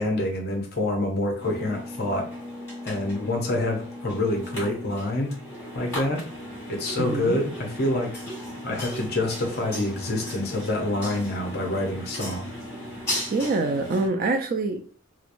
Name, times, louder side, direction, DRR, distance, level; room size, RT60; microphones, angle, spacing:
voice 1, 0.0-2.3 2.8-5.3 5.7-6.2 6.7-8.1 8.6-12.5, left 1 dB, 45° left, 2 dB, 0.6 m, -27 dB
sound 1, 1.4-14.1, left 1 dB, 15° left, 1.2 m, -36 dB
voice 2, 7.0-7.4 13.3-14.8, right 3 dB, 40° right, 6 dB, 0.3 m, -25 dB
2.9 x 2.0 x 2.5 m, 0.42 s
head